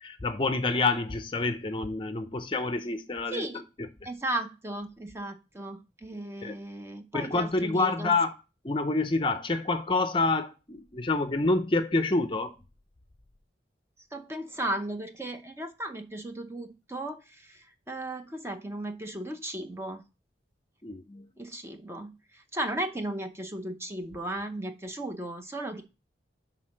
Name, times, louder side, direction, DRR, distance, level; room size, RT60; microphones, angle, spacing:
voice 1, 0.0-3.5 6.4-6.6 7.1-8.3 8.6-12.6 20.8-21.3, left 3 dB, 30° left, 0.6 m, -27 dB
voice 2, 3.3-3.6 4.0-8.1 14.1-20.0 21.4-25.8, right 1 dB, 15° right, 0.6 m, -36 dB
6.3 x 3.9 x 6.2 m
head